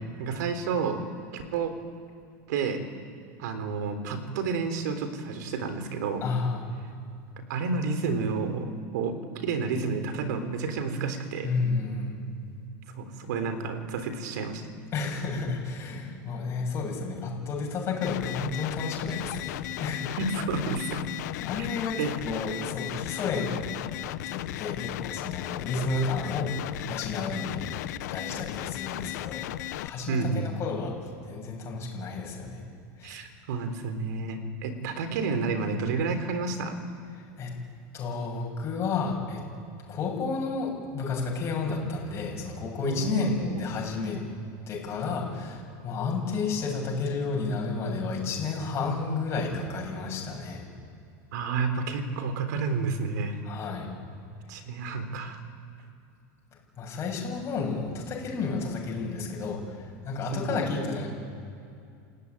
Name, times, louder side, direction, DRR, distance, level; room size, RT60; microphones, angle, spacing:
voice 1, 0.2-1.0 1.3-1.7 2.5-2.8 3.4-6.2 7.5-11.5 12.9-14.6 20.2-21.0 22.0-22.1 30.1-30.5 33.0-36.8 42.8-43.6 51.3-53.4 54.5-55.4 60.3-60.6, right 4 dB, 80° right, 9 dB, 3.7 m, -30 dB
voice 2, 6.2-6.7 11.4-12.2 14.9-20.2 21.4-23.7 24.2-27.7 28.1-29.4 29.8-30.9 31.2-32.7 33.0-33.2 37.2-37.5 37.9-39.4 39.9-44.2 44.7-50.6 53.4-53.9 54.5-54.6 56.8-61.1, left 4 dB, 25° left, -1 dB, 7.7 m, -31 dB
sound 1, 18.0-29.9, left 15 dB, 75° left, 0.8 m, -35 dB
28.5 x 16.5 x 9.8 m, 2.5 s
supercardioid pair, 155°, 9 cm